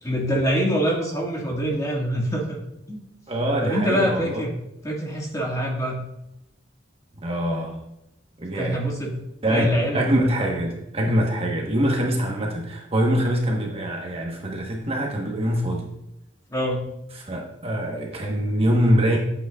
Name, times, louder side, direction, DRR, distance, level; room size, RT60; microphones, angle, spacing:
voice 1, 0.0-2.6 2.9-3.0 3.6-4.5 4.8-6.0 8.5-9.1 9.5-10.1 10.4-10.5 16.5-16.8, equal, 20° left, -2 dB, 1.8 m, -25 dB
voice 2, 3.3-4.4 7.1-7.8 8.4-8.8 9.4-9.7 9.9-15.9 17.2-19.2, equal, 30° right, 0 dB, 1.1 m, -24 dB
12.0 x 8.1 x 2.4 m, 0.86 s
head